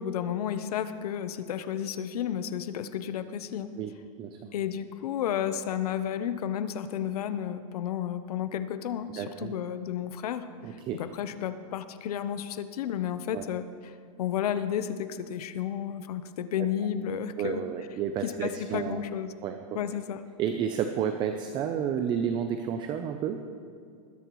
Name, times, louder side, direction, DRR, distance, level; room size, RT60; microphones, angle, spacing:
voice 1, 0.0-3.7 4.5-17.6 18.2-19.3 19.7-20.2, left 9 dB, 85° left, 11 dB, 0.8 m, -32 dB
voice 2, 4.2-4.5 9.2-9.5 10.6-11.0 13.3-13.4 17.4-19.0 19.4-19.6 20.4-23.4, right 8 dB, 25° right, 7 dB, 0.5 m, -31 dB
20.5 x 11.0 x 3.1 m, 2.4 s
supercardioid pair, 160°, 19 cm